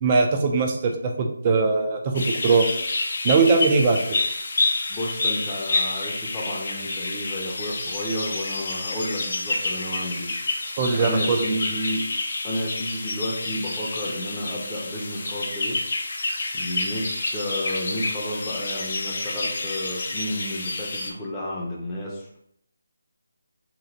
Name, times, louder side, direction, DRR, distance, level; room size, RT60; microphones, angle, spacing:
voice 1, 0.0-2.7 3.2-4.2 10.8-11.6, right 4 dB, 25° right, 3 dB, 0.5 m, -21 dB
sound 1, 2.1-21.1, left 2 dB, 55° left, 0.6 m, -29 dB
voice 2, 4.9-12.1 12.4-15.8 16.5-22.4, equal, 15° left, -5 dB, 0.7 m, -31 dB
3.0 x 2.7 x 3.9 m, 0.71 s
figure-of-eight pair, 160°, 0 cm